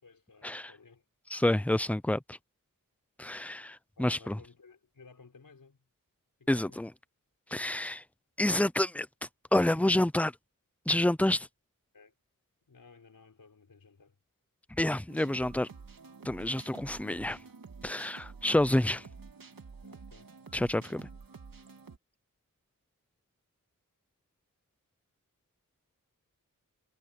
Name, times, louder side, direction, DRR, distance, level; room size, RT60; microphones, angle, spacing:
voice 1, 0.0-1.0 4.0-5.8 6.4-6.8 11.9-12.1 12.7-14.2 19.8-20.4, left 4 dB, 80° left, 5.2 m, -57 dB
voice 2, 1.3-2.4 3.2-4.4 6.5-6.9 7.5-8.0 8.4-9.1 9.5-10.3 10.9-11.5 14.8-15.7 16.2-17.4 17.8-19.1 20.5-21.1, left 1 dB, 5° left, 0.6 m, -28 dB
sound 1, 15.1-22.0, right 5 dB, 80° right, 2.4 m, -49 dB
wide cardioid pair, 85°, 34 cm